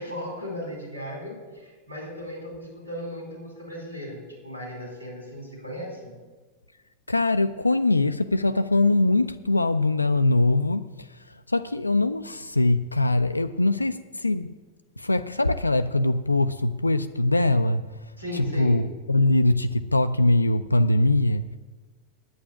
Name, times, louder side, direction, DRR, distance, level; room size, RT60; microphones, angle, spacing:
voice 1, 0.0-6.1 18.2-18.8, equal, 85° right, 4.2 m, -36 dB
voice 2, 7.1-11.1 11.5-14.5 15.0-17.9 18.3-21.5, left 2 dB, 85° left, 0.3 m, -22 dB
8.8 x 8.8 x 8.6 m
figure-of-eight pair, 90°, 0 cm